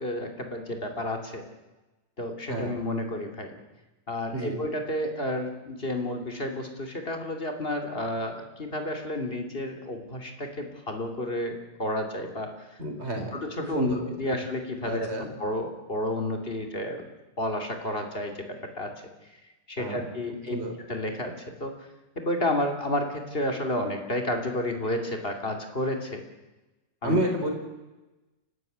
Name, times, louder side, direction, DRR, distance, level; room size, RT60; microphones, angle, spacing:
voice 1, 0.0-1.4 2.2-3.6 4.1-12.8 13.3-17.0 17.4-18.9 19.7-20.6 20.9-21.7 22.1-26.2 27.0-27.2, left 1 dB, 30° left, 4 dB, 3.0 m, -31 dB
voice 2, 12.8-13.3 13.7-14.1 14.9-15.3 19.8-20.0 20.5-20.7 27.0-27.5, right 1 dB, 35° right, 3 dB, 4.4 m, -29 dB
29.0 x 12.5 x 9.3 m, 1.1 s
omnidirectional pair, 1.9 m